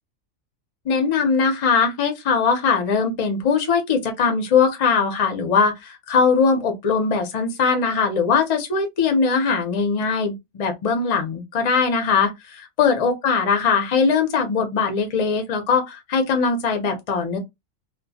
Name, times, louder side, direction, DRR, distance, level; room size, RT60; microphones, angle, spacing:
voice 1, 0.8-17.4, left 5 dB, 45° left, 0.4 m, -21 dB
2.2 x 2.1 x 2.6 m
omnidirectional pair, 1.3 m